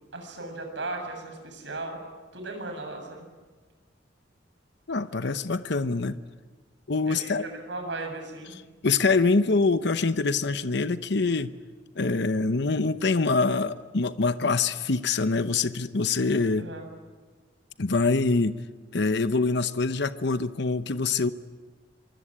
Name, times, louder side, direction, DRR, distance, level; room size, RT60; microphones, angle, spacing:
voice 1, 0.1-2.0 2.3-3.3 7.1-8.6 16.6-16.9, right 2 dB, 75° right, 4 dB, 7.4 m, -36 dB
voice 2, 4.9-6.2 6.9-7.4 8.5-11.5 12.0-16.7 17.8-18.6 18.9-21.3, left 3 dB, 65° left, 12 dB, 0.9 m, -25 dB
25.0 x 24.0 x 10.0 m, 1.4 s
head